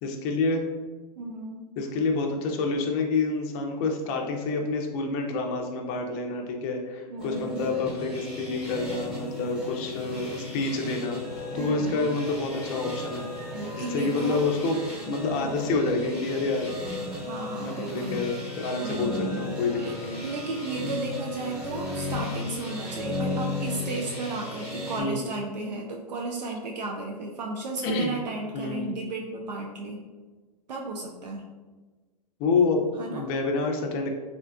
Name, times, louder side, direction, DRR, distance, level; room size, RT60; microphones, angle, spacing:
voice 1, 0.0-0.7 1.8-11.2 11.5-13.3 13.7-14.8 15.0-16.7 17.6-20.2 20.8-21.1 25.0-25.2 27.8-28.2 28.5-28.9 32.4-32.8 33.1-34.1, left 3 dB, 35° left, 2 dB, 0.5 m, -28 dB
voice 2, 1.2-1.7 7.1-7.7 11.5-12.2 13.5-14.5 15.2-15.5 17.2-18.2 18.7-19.5 19.7-19.9 20.2-30.0 30.7-31.5 33.0-33.3, right 3 dB, 85° right, 0 dB, 0.5 m, -34 dB
sound 1, 7.2-25.0, left 2 dB, 5° right, 1.0 m, -35 dB
sound 2, 11.2-23.3, equal, 45° right, 0.9 m, -49 dB
3.7 x 2.3 x 2.2 m, 1.3 s
hypercardioid pair, 125°, 21 cm